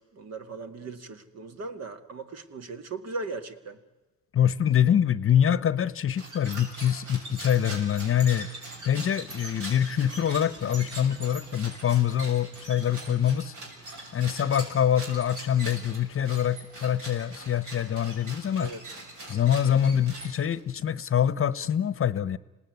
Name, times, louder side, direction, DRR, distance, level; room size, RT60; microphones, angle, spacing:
voice 1, 0.0-3.8 18.6-18.8, right 3 dB, 55° right, 9 dB, 2.1 m, -38 dB
voice 2, 4.3-8.5 8.8-13.5 14.1-18.7 19.3-22.4, left 9 dB, 45° left, 18 dB, 0.9 m, -25 dB
sound 1, 6.1-20.7, right 2 dB, 80° right, 6.8 m, -42 dB
26.5 x 18.5 x 9.5 m, 1.1 s
cardioid pair, 90°, 30 cm